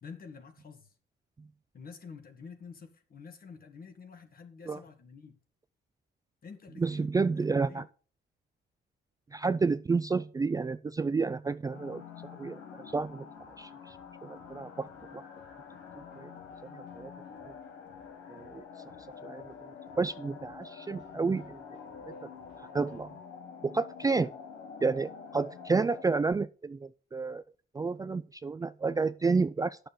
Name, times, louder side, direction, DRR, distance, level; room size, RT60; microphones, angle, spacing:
voice 1, 0.0-0.9 1.7-5.4 6.4-7.8, left 5 dB, 50° left, 1.8 m, -49 dB
voice 2, 6.8-7.8 9.3-12.6 12.9-13.2 13.6-14.0 14.2-14.9 15.1-15.2 16.2-16.3 16.7-17.1 17.5-17.6 18.3-18.6 19.2-19.5 20.0-21.6 22.1-22.2 22.7-23.1 23.6-24.3 24.8-27.4 27.7-29.8, right 4 dB, 20° right, 0.3 m, -30 dB
sound 1, 11.7-26.0, left 6 dB, 85° left, 1.4 m, -47 dB
sound 2, 12.8-23.2, left 4 dB, 65° left, 3.7 m, -63 dB
9.2 x 6.7 x 5.6 m
cardioid pair, 90°, 20 cm